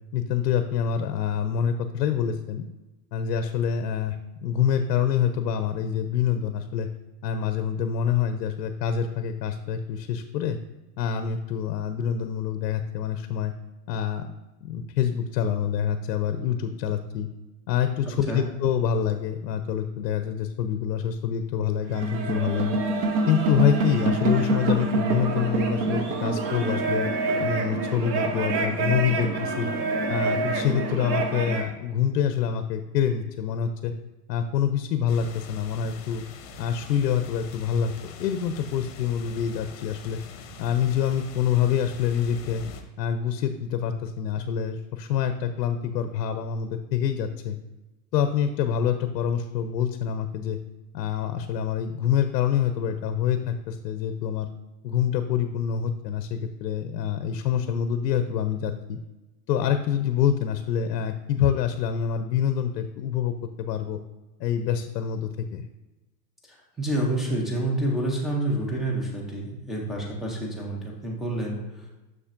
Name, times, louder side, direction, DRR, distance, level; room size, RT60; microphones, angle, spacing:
voice 1, 0.1-2.7 3.1-4.2 4.4-6.9 7.2-10.6 11.0-13.5 13.9-14.3 14.6-17.3 17.7-22.8 23.3-27.1 27.4-29.7 30.1-33.9 34.3-36.2 36.6-37.9 38.2-40.2 40.6-42.6 43.0-47.6 48.1-50.6 50.9-54.5 54.8-59.0 59.5-64.0 64.4-65.7, left 8 dB, 85° left, 8 dB, 0.7 m, -26 dB
sound 1, 21.8-31.7, right 3 dB, 40° right, 0.7 m, -26 dB
sound 2, 35.1-42.8, left 5 dB, 40° left, 0.8 m, -43 dB
voice 2, 66.5-71.9, right 1 dB, ahead, -2 dB, 0.4 m, -28 dB
7.1 x 6.4 x 2.5 m, 1.1 s
supercardioid pair, 145°, 49 cm